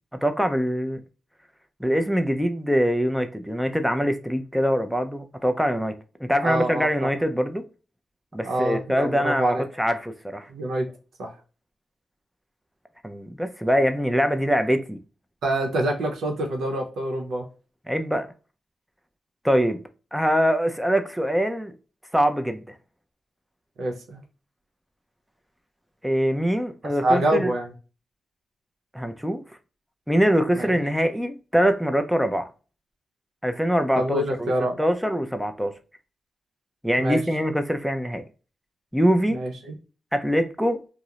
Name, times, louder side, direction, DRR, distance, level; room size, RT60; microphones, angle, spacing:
voice 1, 0.2-1.0 1.8-6.0 6.2-7.6 8.3-10.5 13.0-15.0 17.9-18.3 19.4-19.8 20.1-21.7 22.1-22.7 26.0-27.5 28.9-29.4 30.1-32.5 33.4-34.5 34.8-35.7 36.8-38.2 38.9-39.4 40.1-40.8, equal, ahead, 0.4 m, -23 dB
voice 2, 6.4-7.1 8.4-9.6 10.5-10.9 11.2-11.3 15.4-17.5 23.8-24.2 27.0-27.7 30.5-30.7 34.0-34.8 37.0-37.2 39.3-39.7, right 1 dB, 80° right, 0.7 m, -26 dB
2.4 x 2.0 x 2.8 m
cardioid pair, 70°, 0 cm